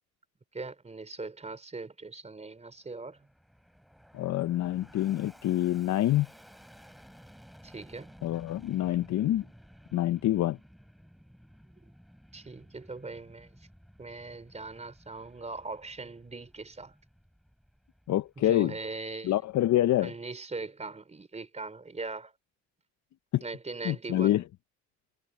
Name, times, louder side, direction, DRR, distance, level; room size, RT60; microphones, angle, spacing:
voice 1, 0.5-3.3 7.6-8.2 12.3-13.5 14.0-16.9 18.4-19.3 20.0-22.3 23.4-24.4, right 3 dB, 20° right, 3.7 m, -40 dB
Fixed-wing aircraft airplane, 2.6-19.2, equal, ahead, 4.1 m, -56 dB
voice 2, 4.1-6.3 8.2-9.4 9.9-10.6 18.1-18.7 19.2-20.1 23.3-23.4 23.8-24.4, left 13 dB, 70° left, 0.7 m, -26 dB
cardioid pair, 90°, 30 cm